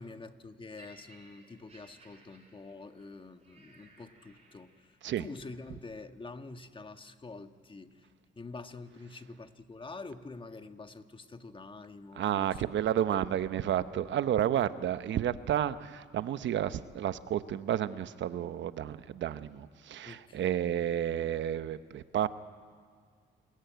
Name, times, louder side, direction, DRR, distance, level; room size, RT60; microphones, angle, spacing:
voice 1, 0.0-8.0 8.4-12.6 20.0-20.5, left 3 dB, 25° left, 8 dB, 1.5 m, -47 dB
Laughter, 0.8-5.0 5.8-6.0, right 2 dB, 30° right, 6.6 m, -60 dB
voice 2, 12.1-22.3, right 10 dB, 70° right, 13 dB, 1.0 m, -31 dB
27.5 x 21.5 x 9.3 m, 2.1 s
cardioid pair, 90°, 20 cm